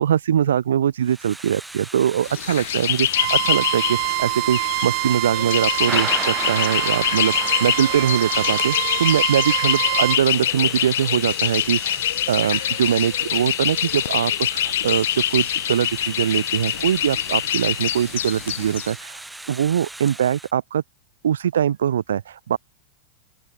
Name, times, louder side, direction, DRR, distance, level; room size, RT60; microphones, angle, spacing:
voice 1, 0.0-19.2 19.5-20.8 21.2-22.6, right 9 dB, 85° right, 2.4 m, -22 dB
Thunder / Rain, 1.0-20.5, right 2 dB, 5° right, 5.6 m, -37 dB
sound 1, 2.3-18.9, left 12 dB, 75° left, 1.5 m, -25 dB
Bowed string instrument, 3.1-10.2, right 33 dB, 55° right, 7.0 m, -26 dB
open air
hypercardioid pair, 105°, 0 cm